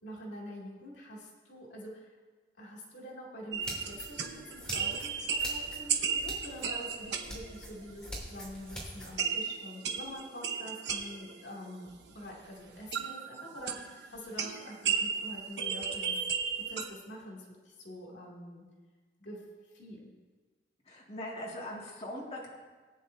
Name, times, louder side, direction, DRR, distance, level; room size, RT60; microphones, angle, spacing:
voice 1, 0.0-2.1 2.6-16.2 16.5-18.7 19.2-20.1, equal, 75° left, -3 dB, 2.7 m, -46 dB
sound 1, 3.5-8.2 8.5-12.2 12.7-16.8, right 6 dB, 70° right, 1.0 m, -35 dB
sound 2, 3.6-9.1, equal, 5° left, 3.1 m, -45 dB
voice 2, 20.9-22.6, left 1 dB, 35° left, -5 dB, 2.1 m, -41 dB
19.5 x 9.7 x 2.8 m, 1.4 s
head